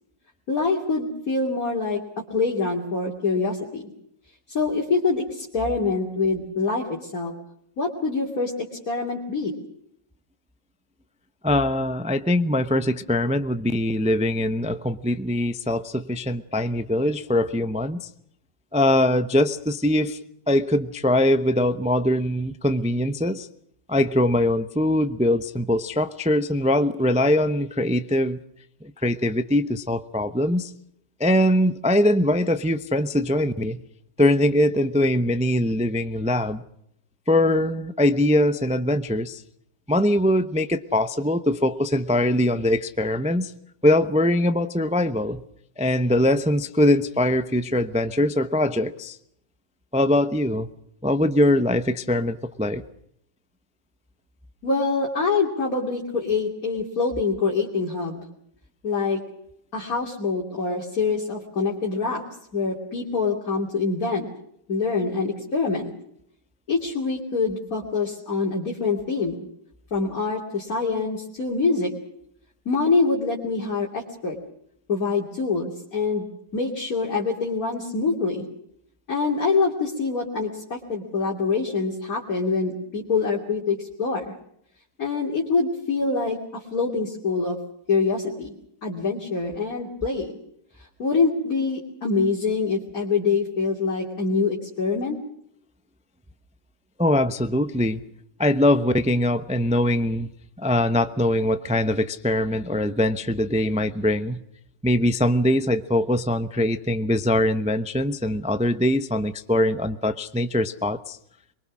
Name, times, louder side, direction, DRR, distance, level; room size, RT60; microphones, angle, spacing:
voice 1, 0.5-3.9 4.5-7.3 7.8-9.6 54.6-58.2 58.8-59.2 59.7-62.2 62.5-64.3 64.7-65.9 66.7-69.4 69.9-71.9 72.6-74.4 74.9-76.3 76.5-78.4 79.1-84.3 85.0-87.6 87.9-88.5 88.8-90.4 91.0-95.2, left 4 dB, 50° left, -2 dB, 3.3 m, -25 dB
voice 2, 11.4-18.1 18.7-20.2 20.5-23.5 23.9-28.4 28.8-30.7 31.2-33.8 34.2-36.6 37.3-39.4 39.9-43.5 43.8-45.4 45.8-49.2 49.9-50.7 51.0-52.8 97.0-98.0 98.4-100.3 100.6-104.4 104.8-111.2, left 1 dB, 10° right, 11 dB, 0.4 m, -22 dB
24.0 x 22.5 x 6.2 m, 0.72 s
omnidirectional pair, 1.9 m